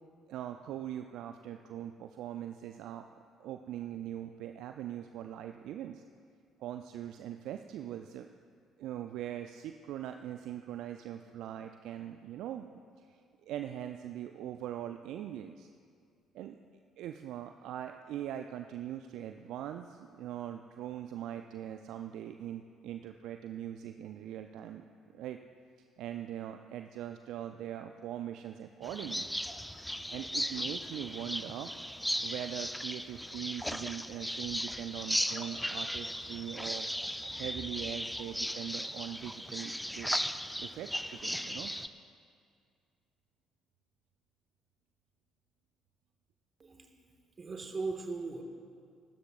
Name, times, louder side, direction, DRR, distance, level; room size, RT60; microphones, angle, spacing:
voice 1, 0.3-3.1 3.4-6.0 6.6-8.3 8.8-15.7 16.3-16.6 17.0-24.8 25.1-25.4 26.0-29.3 30.1-31.7 32.2-36.9 37.4-40.1 40.6-41.7, right 11 dB, 65° right, 7 dB, 0.4 m, -41 dB
sound 1, 28.8-41.9, equal, 5° left, 0.6 m, -37 dB
voice 2, 46.6-47.1 47.4-48.4, right 3 dB, 35° right, 3 dB, 1.7 m, -38 dB
22.5 x 12.5 x 2.5 m, 2.2 s
figure-of-eight pair, 50°, 0 cm